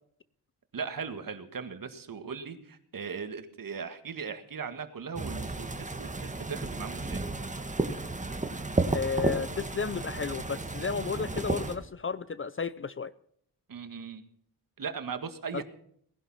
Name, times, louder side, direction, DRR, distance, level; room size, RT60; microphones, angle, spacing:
voice 1, 0.7-7.3 13.7-14.2 14.8-15.6, right 6 dB, 55° right, 1.9 m, -38 dB
sound 1, 5.2-11.8, right 2 dB, 20° right, 1.8 m, -33 dB
voice 2, 8.9-13.1 15.5-15.6, left 5 dB, 35° left, 0.6 m, -33 dB
19.0 x 11.0 x 5.7 m
cardioid pair, 85°, 39 cm